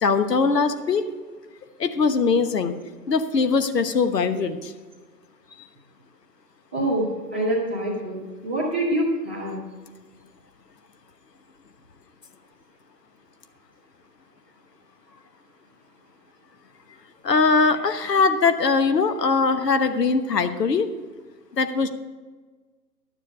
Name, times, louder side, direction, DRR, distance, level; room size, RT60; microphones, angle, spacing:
voice 1, 0.0-1.0 1.8-2.7 3.1-4.7 17.2-20.9 21.6-21.9, left 4 dB, 75° left, 9 dB, 1.2 m, -21 dB
voice 2, 6.7-9.6, right 1 dB, 5° right, -9 dB, 0.7 m, -26 dB
12.0 x 7.4 x 5.5 m, 1.4 s
hypercardioid pair, 165°, 49 cm